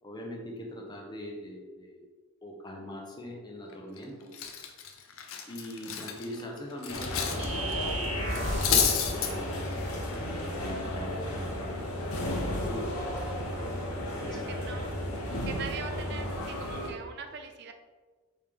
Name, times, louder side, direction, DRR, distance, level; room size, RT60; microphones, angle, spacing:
voice 1, 0.0-2.1 2.4-4.3 5.5-9.6 10.3-12.1 12.5-13.1 13.4-14.9, equal, 20° left, 0 dB, 0.6 m, -42 dB
Cutlery silverware, 3.7-4.0 4.3-7.4 7.7-7.9 8.3-9.3, left 7 dB, 70° left, 0.5 m, -29 dB
sound 1, 6.9-16.9, left 1 dB, 90° left, 0.9 m, -34 dB
sound 2, 7.4-9.0, right 1 dB, 30° right, 1.3 m, -34 dB
voice 2, 14.2-14.9 15.4-17.7, right 6 dB, 50° right, 6 dB, 0.3 m, -42 dB
4.4 x 3.4 x 3.5 m, 1.4 s
head